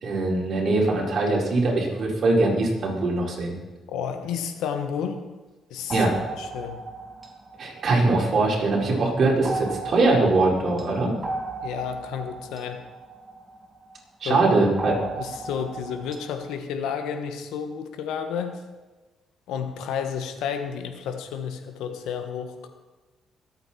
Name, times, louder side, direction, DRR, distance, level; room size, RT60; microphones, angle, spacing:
voice 1, 0.0-3.5 5.9-6.1 7.6-11.1 14.2-15.0, right 2 dB, 55° right, -3 dB, 4.5 m, -22 dB
voice 2, 3.9-5.2 5.7-6.1 6.4-6.8 11.6-12.8 14.2-14.4 15.2-18.6 19.5-22.7, left 7 dB, 90° left, 7 dB, 1.4 m, -31 dB
sound 1, 5.9-8.7 9.4-14.0 14.8-16.6, right 2 dB, 25° right, 2.4 m, -36 dB
22.5 x 8.8 x 4.4 m, 1.2 s
cardioid pair, 90°, 0 cm